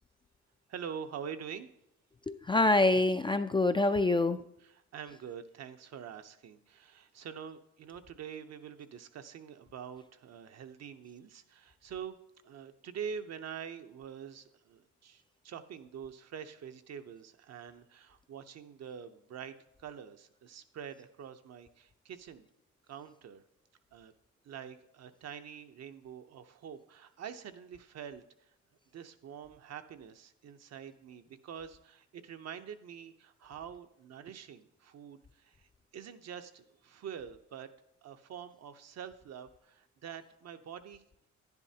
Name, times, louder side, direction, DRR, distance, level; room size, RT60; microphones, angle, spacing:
voice 1, 0.7-1.7 4.6-12.2 12.4-19.5 19.8-22.5 22.9-23.4 23.9-24.1 24.4-28.2 28.9-35.6 35.9-37.7 38.0-41.0, right 7 dB, 60° right, 8 dB, 0.8 m, -45 dB
voice 2, 2.3-4.4, left 2 dB, 15° left, 9 dB, 0.3 m, -26 dB
10.5 x 10.5 x 2.8 m, 0.78 s
cardioid pair, 90°, 30 cm